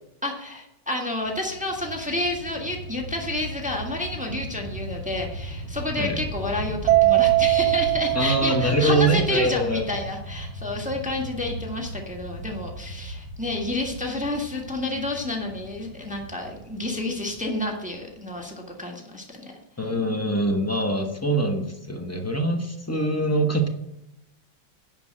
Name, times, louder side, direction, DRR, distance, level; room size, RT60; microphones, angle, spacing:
voice 1, 0.2-19.5, left 2 dB, 5° right, 1 dB, 1.2 m, -30 dB
Fixed-wing aircraft airplane, 1.2-18.6, right 1 dB, 30° right, 4.1 m, -37 dB
Mallet percussion, 6.9-9.3, right 19 dB, 90° right, 0.8 m, -21 dB
voice 2, 8.1-9.9 19.8-23.7, right 1 dB, 15° left, 3 dB, 0.5 m, -23 dB
10.0 x 5.3 x 7.5 m, 0.87 s
omnidirectional pair, 2.2 m